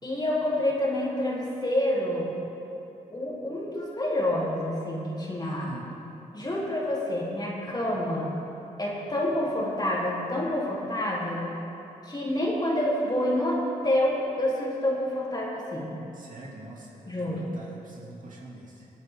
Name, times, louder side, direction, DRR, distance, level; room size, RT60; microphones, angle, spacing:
voice 1, 0.0-2.3 3.1-5.7 6.3-8.3 8.8-11.5 12.0-15.9 17.1-17.4, left 1 dB, 25° left, -5 dB, 3.3 m, -28 dB
voice 2, 5.4-5.8 16.1-18.9, right 2 dB, 55° right, -3 dB, 2.5 m, -42 dB
19.5 x 8.8 x 3.7 m, 2.9 s
supercardioid pair, 55°, 16 cm